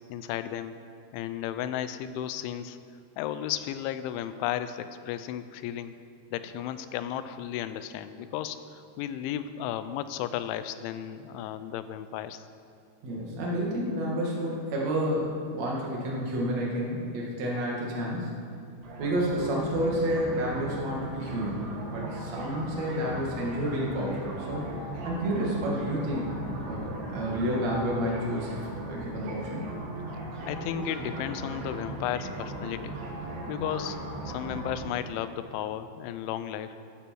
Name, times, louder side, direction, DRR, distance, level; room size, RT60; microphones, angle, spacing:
voice 1, 0.1-0.7 1.1-2.8 3.2-5.9 6.3-12.4 30.4-32.9 33.5-34.0 34.3-36.8, left 11 dB, 90° left, 12 dB, 3.0 m, -34 dB
voice 2, 13.0-18.4 19.0-24.2 24.5-24.6 24.9-26.4 26.6-28.6 28.9-29.6, equal, 45° right, -3 dB, 2.8 m, -30 dB
sound 1, 18.8-34.8, right 1 dB, 70° right, 4.6 m, -38 dB
15.0 x 11.5 x 4.7 m, 2.5 s
omnidirectional pair, 5.3 m